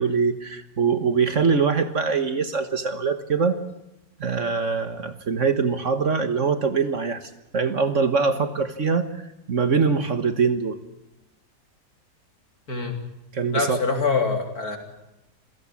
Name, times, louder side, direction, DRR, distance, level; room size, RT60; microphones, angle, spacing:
voice 1, 0.0-3.6 4.2-9.1 9.5-10.8 13.3-13.8, right 5 dB, 50° right, 10 dB, 1.7 m, -23 dB
voice 2, 13.5-14.8, left 4 dB, 60° left, 4 dB, 4.0 m, -24 dB
27.5 x 17.0 x 8.6 m, 0.93 s
omnidirectional pair, 1.8 m